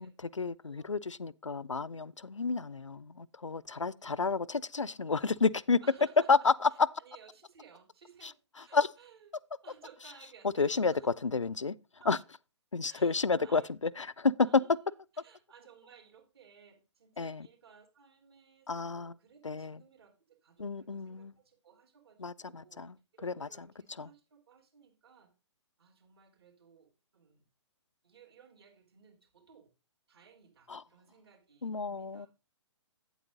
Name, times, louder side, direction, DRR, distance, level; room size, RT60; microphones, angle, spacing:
voice 1, 0.0-5.8 6.3-6.5 8.7-8.9 10.6-10.9 11.2-11.7 12.1-12.2 12.7-14.3 17.2-17.5 18.7-19.1 19.4-19.8 20.6-21.3 22.2-23.0 23.2-23.5 24.0-24.1 30.7-30.8 31.6-32.3, left 4 dB, 85° left, 0.4 m, -31 dB
voice 2, 3.6-4.3 5.8-9.3 9.6-11.2 12.0-12.3 12.8-13.7 14.4-22.8 23.1-25.3 25.8-27.4 28.0-29.7 30.1-32.3, right 7 dB, 55° right, 3.3 m, -59 dB
8.7 x 8.1 x 3.7 m
figure-of-eight pair, 125°, 15 cm